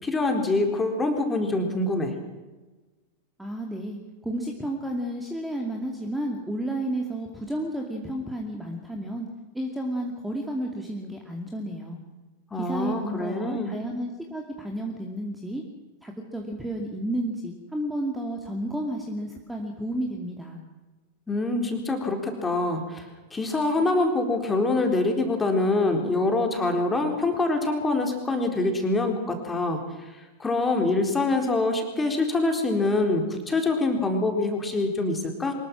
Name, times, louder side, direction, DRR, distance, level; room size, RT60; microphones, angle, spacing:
voice 1, 0.0-2.1 12.5-13.7 21.3-23.0 23.3-29.8 30.4-35.5, left 2 dB, 15° left, 4 dB, 4.1 m, -25 dB
voice 2, 3.4-9.3 9.5-12.0 12.6-15.6 16.0-20.6, right 1 dB, 5° right, 2 dB, 2.5 m, -32 dB
24.5 x 21.0 x 6.1 m, 1.2 s
figure-of-eight pair, 90°, 0 cm